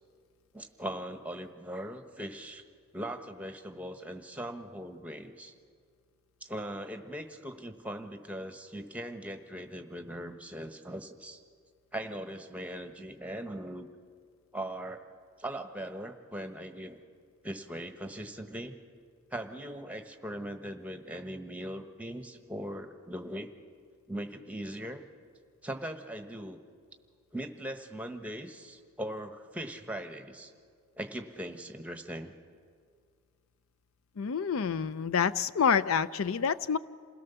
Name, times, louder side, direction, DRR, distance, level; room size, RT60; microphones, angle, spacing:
voice 1, 0.5-2.6 2.9-5.5 6.4-11.4 11.9-13.9 14.5-15.0 15.4-17.0 17.4-18.7 19.3-23.5 24.1-25.0 25.6-26.6 27.3-30.5 31.0-32.3, right 1 dB, 5° right, 6 dB, 1.1 m, -40 dB
voice 2, 34.2-36.8, left 6 dB, 70° left, 16 dB, 0.5 m, -27 dB
28.0 x 17.0 x 6.9 m, 2.1 s
head